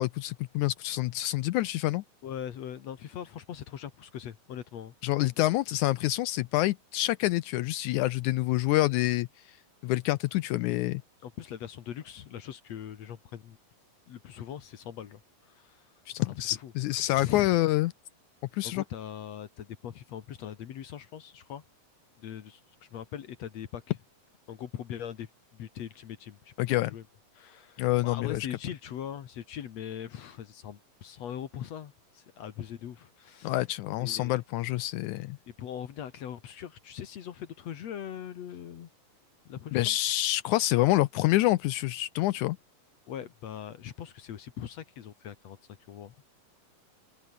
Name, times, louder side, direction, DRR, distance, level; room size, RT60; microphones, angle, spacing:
voice 1, 0.0-2.0 5.0-9.3 9.8-11.0 16.1-17.9 18.5-18.8 26.6-26.9 27.8-28.5 33.4-35.4 39.7-42.6, left 17 dB, 85° left, 1.7 m, -27 dB
voice 2, 2.2-4.9 11.2-13.6 14.1-15.8 16.2-16.7 17.1-17.5 18.6-21.6 22.2-22.6 22.9-24.0 24.5-27.0 27.4-33.5 34.0-34.4 35.5-38.9 39.5-40.0 43.1-45.6 45.9-46.1, left 9 dB, 60° left, 2.3 m, -41 dB
open air
omnidirectional pair, 3.9 m